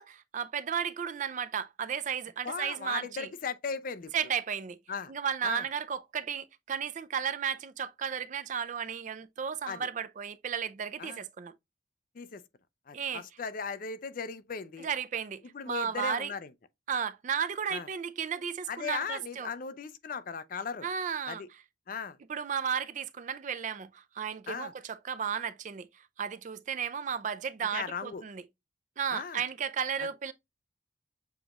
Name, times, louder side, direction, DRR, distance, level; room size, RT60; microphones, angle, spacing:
voice 1, 0.0-3.3 4.1-4.8 5.1-11.5 12.9-13.2 14.8-16.3 16.9-19.5 20.8-21.4 22.3-28.4 29.0-30.3, right 7 dB, 40° right, 0.4 m, -34 dB
voice 2, 2.4-4.1 4.9-5.1 5.4-5.6 9.7-9.9 11.0-11.2 12.2-12.4 12.9-14.9 15.5-16.5 17.7-17.9 18.7-20.9 21.3-21.5 21.9-22.2 24.5-24.7 27.7-28.2 29.1-29.4, left 6 dB, 45° left, 0.4 m, -37 dB
7.0 x 2.9 x 2.4 m
head